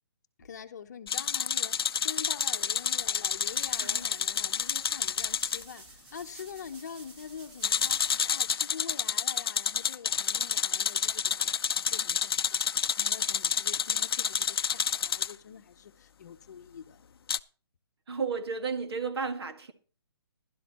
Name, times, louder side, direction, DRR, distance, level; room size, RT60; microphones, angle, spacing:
voice 1, 0.4-17.0, left 7 dB, 40° left, 0.9 m, -45 dB
sound 1, 1.1-5.6 7.6-15.3 17.3-17.4, left 7 dB, 60° left, 0.5 m, -29 dB
sound 2, 3.0-8.4, right 2 dB, 25° right, 2.2 m, -52 dB
voice 2, 18.1-19.7, right 5 dB, 65° right, 1.9 m, -33 dB
15.5 x 12.0 x 3.0 m
hypercardioid pair, 170°, 14 cm